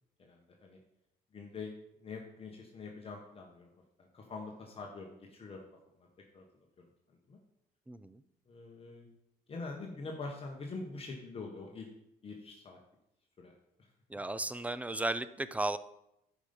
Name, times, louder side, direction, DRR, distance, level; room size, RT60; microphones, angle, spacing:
voice 1, 0.2-0.8 1.3-1.7 2.0-3.7 4.0-5.6 6.0-6.1 6.3-6.4 7.3-7.4 8.5-9.1 9.5-11.9 12.2-12.8 13.4-13.5 13.8-13.9, left 3 dB, 35° left, 0 dB, 1.4 m, -44 dB
voice 2, 7.9-8.2 14.1-15.8, right 2 dB, 10° right, 14 dB, 0.4 m, -35 dB
9.9 x 5.5 x 5.3 m, 0.83 s
cardioid pair, 110°, 17 cm